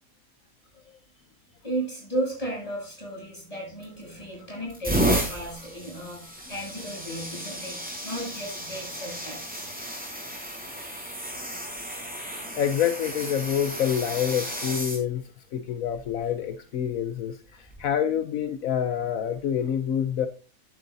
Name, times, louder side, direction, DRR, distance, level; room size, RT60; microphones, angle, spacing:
voice 1, 1.6-9.7, right 1 dB, 25° left, 7.8 m, -34 dB
sound 1, 3.8-4.2 4.7-15.0 15.9-16.1 17.6-17.8, right 1 dB, 5° right, 5.1 m, -32 dB
voice 2, 12.3-20.3, left 9 dB, 75° left, 1.2 m, -27 dB
12.0 x 11.5 x 2.7 m
omnidirectional pair, 1.5 m